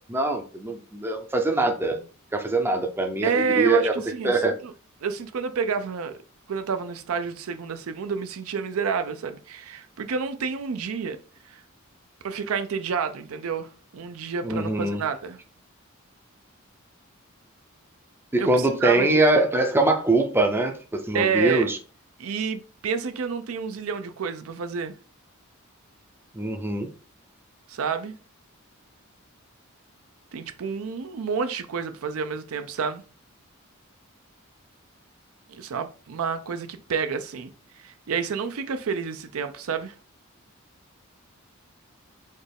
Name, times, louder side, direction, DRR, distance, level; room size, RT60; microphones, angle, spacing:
voice 1, 0.1-2.0 2.3-3.9 4.2-4.6 14.4-15.0 18.3-21.8 26.3-26.9, right 2 dB, 10° right, 0.5 m, -23 dB
voice 2, 3.2-4.7 5.0-6.2 6.5-11.2 11.5-11.6 12.2-15.4 18.4-19.2 21.1-21.7 22.2-24.9 27.7-28.1 30.3-33.0 35.5-37.5 37.8-39.9, right 5 dB, 75° right, 0.4 m, -29 dB
4.3 x 2.4 x 3.4 m
head